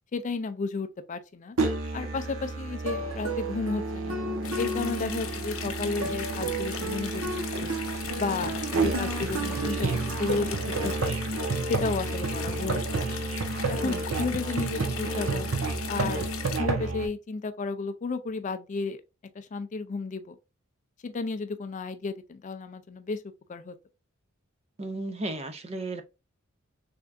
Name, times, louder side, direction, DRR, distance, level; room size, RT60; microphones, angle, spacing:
voice 1, 0.1-1.6 1.9-4.2 4.6-7.7 8.2-10.5 10.8-11.3 11.7-13.2 13.7-15.5 15.9-16.3 16.6-19.0 19.4-20.4 21.0-23.2 23.5-23.7, left 4 dB, 35° left, 0.4 m, -33 dB
Musical instrument, 1.6-17.1, right 3 dB, 80° right, 0.9 m, -30 dB
sound 1, 4.4-16.6, left 8 dB, 80° left, 0.6 m, -39 dB
Run, 5.4-11.2, right 1 dB, 50° right, 2.2 m, -44 dB
voice 2, 24.8-26.0, right 2 dB, 30° right, 0.5 m, -34 dB
3.5 x 3.4 x 2.4 m
head